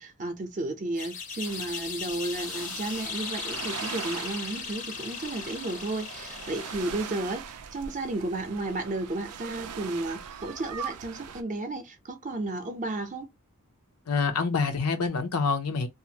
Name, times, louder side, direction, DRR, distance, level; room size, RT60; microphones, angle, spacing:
voice 1, 0.0-13.3, right 2 dB, 35° right, 0.6 m, -33 dB
sound 1, 1.0-7.3, left 6 dB, 35° left, 0.6 m, -37 dB
sound 2, 1.4-11.4, right 7 dB, 90° right, 0.4 m, -41 dB
voice 2, 14.1-15.9, left 5 dB, 90° left, 0.6 m, -26 dB
2.5 x 2.5 x 2.7 m
head